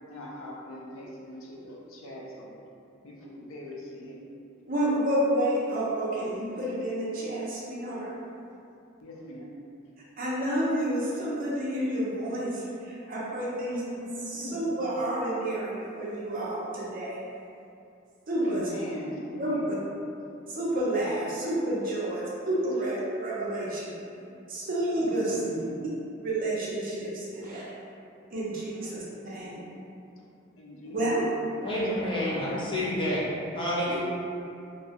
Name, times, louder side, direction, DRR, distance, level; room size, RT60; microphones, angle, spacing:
voice 1, 0.1-2.5 3.0-4.2 9.0-9.5 13.0-13.1 13.7-14.0 14.3-14.7 18.4-19.8 24.3-24.5 25.0-25.8 29.1-29.7 30.2-30.3 30.6-31.0 31.3-32.3, equal, 80° left, -2 dB, 0.5 m, -41 dB
voice 2, 4.7-8.1 10.2-17.2 18.3-18.7 19.4-19.8 20.5-23.9 24.5-25.4 26.2-27.7 28.3-29.7 30.9-31.2 33.9-34.0, right 1 dB, 45° right, -6 dB, 0.5 m, -30 dB
voice 3, 31.6-33.2 33.5-34.0, left 1 dB, 25° left, -8 dB, 0.6 m, -28 dB
2.8 x 2.2 x 2.8 m, 2.6 s
head